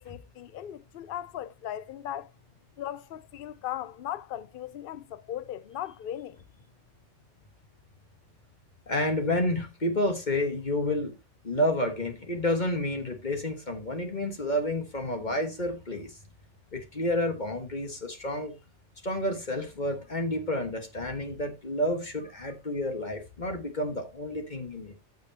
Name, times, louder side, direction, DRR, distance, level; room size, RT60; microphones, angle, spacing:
voice 1, 0.0-2.3 2.8-6.4, left 11 dB, 55° left, 0.7 m, -38 dB
voice 2, 8.9-11.1 11.4-16.1 16.7-18.5 19.0-24.9, left 1 dB, 40° left, 1.5 m, -30 dB
14.5 x 6.7 x 2.8 m
omnidirectional pair, 1.2 m